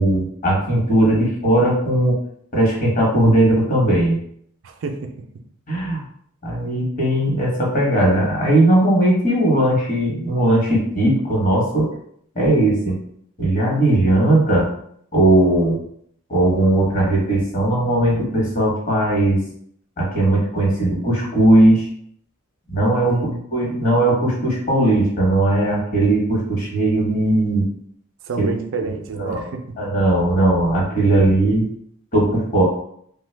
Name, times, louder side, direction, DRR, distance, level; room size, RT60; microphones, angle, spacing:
voice 1, 0.0-2.2 2.5-4.2 5.7-6.0 6.4-11.9 12.3-13.0 13.4-14.7 15.1-15.8 16.3-19.4 20.0-21.9 22.7-23.2 23.5-27.7 28.4-28.5 29.1-29.4 29.8-31.7 32.1-32.6, right 1 dB, 35° left, -3 dB, 1.0 m, -18 dB
voice 2, 4.6-5.3 23.1-23.4 28.2-29.8, right 4 dB, 60° right, 6 dB, 0.4 m, -29 dB
3.1 x 2.2 x 3.2 m, 0.67 s
head